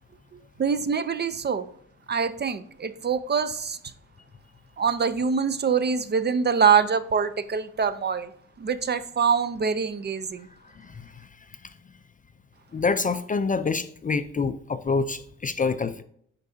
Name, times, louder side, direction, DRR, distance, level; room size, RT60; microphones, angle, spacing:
voice 1, 0.6-1.7 2.1-3.8 4.8-8.3 8.6-10.5, right 6 dB, 35° right, 13 dB, 0.5 m, -24 dB
voice 2, 12.7-16.0, left 4 dB, 25° left, 11 dB, 0.4 m, -26 dB
10.5 x 4.6 x 2.6 m, 0.66 s
cardioid pair, 115°, 31 cm